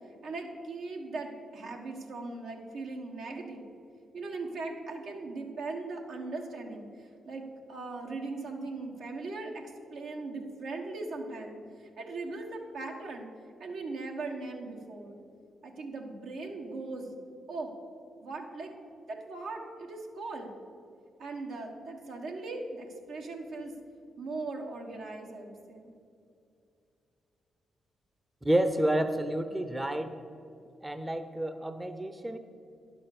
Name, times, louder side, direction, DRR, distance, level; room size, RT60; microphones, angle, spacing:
voice 1, 0.2-3.6 4.1-13.3 13.6-15.2 15.6-17.1 17.5-17.7 18.2-18.7 19.1-20.5 21.2-23.7 24.2-25.9, right 3 dB, 75° right, 1 dB, 1.4 m, -39 dB
voice 2, 28.4-30.1 30.8-32.4, right 1 dB, 15° right, 9 dB, 0.7 m, -29 dB
10.5 x 6.1 x 6.6 m, 2.6 s
supercardioid pair, 55°, 0 cm